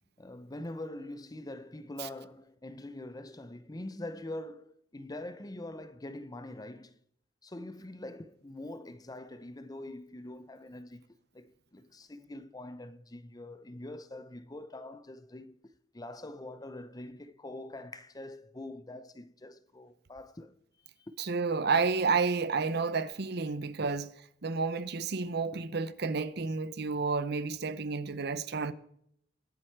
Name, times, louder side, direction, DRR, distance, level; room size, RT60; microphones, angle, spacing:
voice 1, 0.2-7.0 7.4-15.6 15.9-20.5 21.0-21.1 23.8-23.9, left 1 dB, 20° left, 0.7 m, -44 dB
voice 2, 21.2-24.1 24.4-28.7, right 4 dB, 60° right, 0.8 m, -30 dB
22.5 x 7.7 x 4.6 m
head